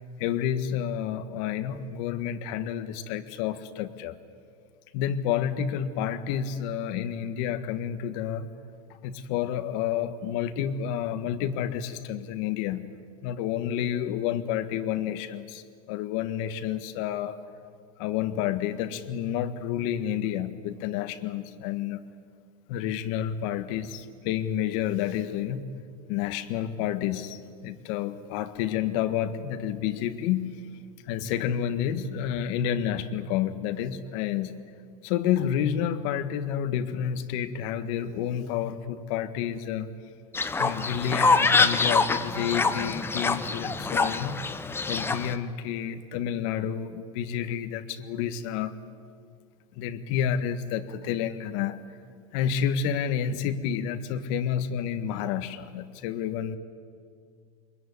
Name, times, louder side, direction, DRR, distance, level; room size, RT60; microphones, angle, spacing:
voice 1, 0.2-4.2 4.9-8.5 9.0-12.8 13.2-17.4 18.0-22.0 22.7-25.8 26.1-30.7 31.1-34.5 35.0-39.9 40.6-44.4 44.9-48.8 49.7-51.8 52.3-56.6, left 9 dB, 60° left, 11 dB, 1.7 m, -30 dB
Fowl, 40.3-45.3, left 4 dB, 10° left, 1.0 m, -25 dB
24.0 x 21.5 x 9.8 m, 2.2 s
supercardioid pair, 120°, 19 cm